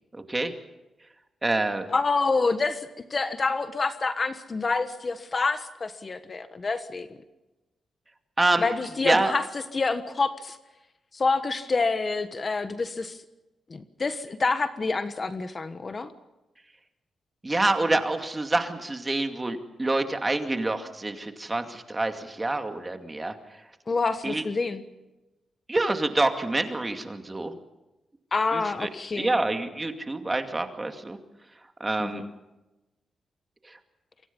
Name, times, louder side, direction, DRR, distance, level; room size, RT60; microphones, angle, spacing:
voice 1, 0.1-0.5 1.4-1.9 8.4-8.6 9.0-9.3 17.4-23.3 24.2-24.4 25.7-27.6 28.5-28.9 29.1-31.2 31.8-32.2, right 2 dB, 20° right, 6 dB, 2.4 m, -27 dB
voice 2, 1.9-7.1 8.6-10.6 11.1-13.2 13.7-16.1 23.9-24.8 28.3-29.4 32.0-32.3, left 3 dB, 35° left, 10 dB, 1.4 m, -27 dB
28.0 x 24.0 x 5.5 m, 1.0 s
cardioid pair, 115°, 0 cm